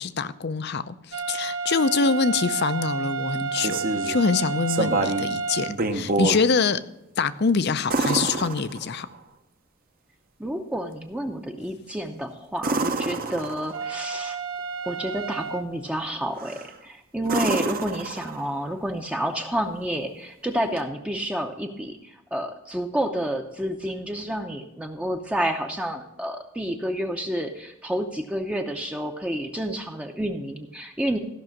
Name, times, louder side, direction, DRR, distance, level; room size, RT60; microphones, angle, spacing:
voice 1, 0.0-6.8 7.2-9.1, left 5 dB, 50° left, 14 dB, 0.5 m, -25 dB
sound 1, 1.1-5.8 13.7-15.6, right 5 dB, 70° right, 1.2 m, -30 dB
sound 2, 3.3-4.2 4.7-5.3 5.7-6.4 7.9-9.2 12.6-13.9 16.4-16.7 17.2-18.6 20.8-20.9, right 3 dB, 40° right, 0.8 m, -27 dB
voice 2, 10.4-14.4 14.8-31.2, right 1 dB, 5° right, 3 dB, 0.7 m, -29 dB
14.5 x 6.1 x 6.0 m, 0.90 s
head